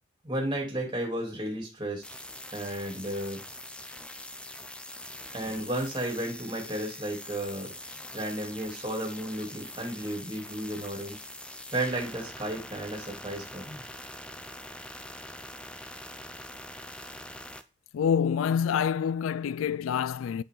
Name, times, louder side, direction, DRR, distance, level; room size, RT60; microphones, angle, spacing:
voice 1, 0.2-2.0 2.5-3.4 5.3-7.7 8.1-11.2 11.7-13.8, right 1 dB, 25° right, 3.3 m, -33 dB
sound 1, 2.0-17.6, left 1 dB, 5° left, 0.4 m, -43 dB
voice 2, 17.9-20.4, left 7 dB, 85° left, 0.3 m, -27 dB
8.3 x 6.6 x 3.9 m
head